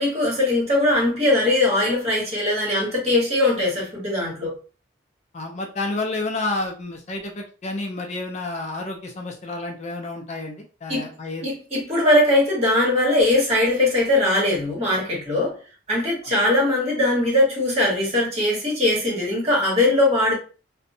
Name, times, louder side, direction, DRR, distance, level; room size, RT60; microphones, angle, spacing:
voice 1, 0.0-4.5 10.9-11.1 11.4-15.6 15.9-20.4, left 1 dB, 35° right, 1.3 m, -20 dB
voice 2, 5.3-11.5, left 2 dB, 40° left, 0.4 m, -30 dB
2.7 x 2.1 x 2.6 m
head